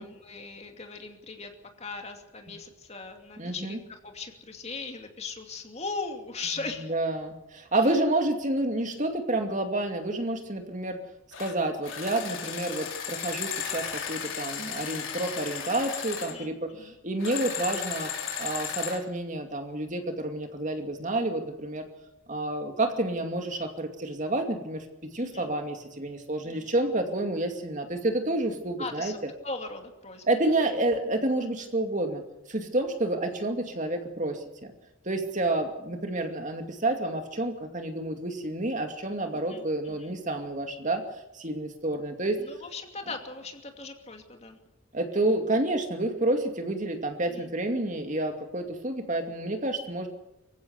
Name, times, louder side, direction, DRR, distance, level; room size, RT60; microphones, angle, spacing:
voice 1, 0.0-1.5 1.8-6.9 7.8-8.0 16.3-16.9 25.2-25.5 26.4-26.7 28.8-29.2 29.4-30.2 39.3-40.1 42.4-44.6 47.3-47.5, left 4 dB, 30° left, 4 dB, 2.6 m, -39 dB
voice 2, 3.4-3.8 6.9-11.0 11.4-18.1 18.4-21.9 22.3-29.1 30.3-32.2 32.5-34.7 35.1-41.0 41.3-42.4 44.9-50.1, right 2 dB, 35° right, 5 dB, 2.5 m, -29 dB
sound 1, 11.3-11.5 11.8-16.4 17.2-19.0, left 7 dB, 65° left, 3.9 m, -35 dB
25.0 x 15.5 x 8.1 m, 0.92 s
head